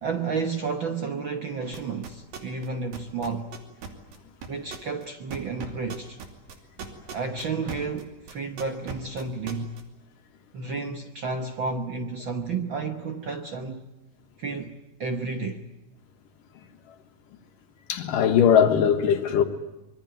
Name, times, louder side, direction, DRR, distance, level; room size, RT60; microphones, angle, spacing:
voice 1, 0.0-3.5 4.5-6.2 7.1-9.8 10.5-13.8 14.4-15.6, right 4 dB, 65° right, 1.2 m, -31 dB
sound 1, 1.7-2.7 2.9-8.0 8.3-9.8, right 6 dB, 85° right, 4.4 m, -37 dB
voice 2, 17.9-19.4, left 8 dB, 75° left, 3.1 m, -20 dB
25.0 x 22.5 x 9.3 m
omnidirectional pair, 3.9 m